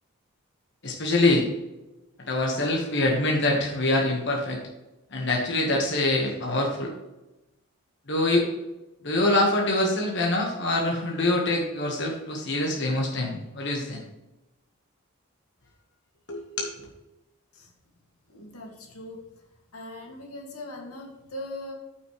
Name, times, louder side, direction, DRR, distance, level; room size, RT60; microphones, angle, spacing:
voice 1, 0.8-1.5 2.3-4.6 5.1-6.9 8.1-8.5 9.0-14.0 16.3-16.7, left 2 dB, 50° left, -1 dB, 1.6 m, -24 dB
voice 2, 18.3-19.2 19.7-21.7, left 1 dB, 85° left, 0 dB, 2.3 m, -40 dB
14.0 x 5.8 x 3.3 m, 0.99 s
head